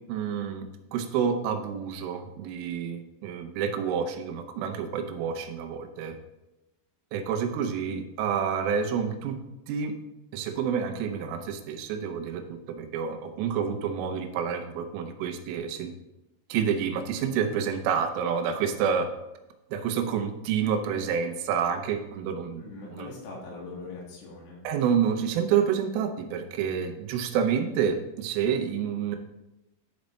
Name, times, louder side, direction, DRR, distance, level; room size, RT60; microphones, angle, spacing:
voice 1, 0.1-6.2 7.1-9.4 9.7-9.9 10.3-12.4 12.7-15.9 16.5-19.1 19.7-22.6 22.9-23.1 24.6-29.2, right 7 dB, 90° right, 6 dB, 3.4 m, -28 dB
voice 2, 22.6-24.6, left 3 dB, 80° left, -3 dB, 4.4 m, -41 dB
11.5 x 5.2 x 3.1 m, 0.95 s
omnidirectional pair, 5.6 m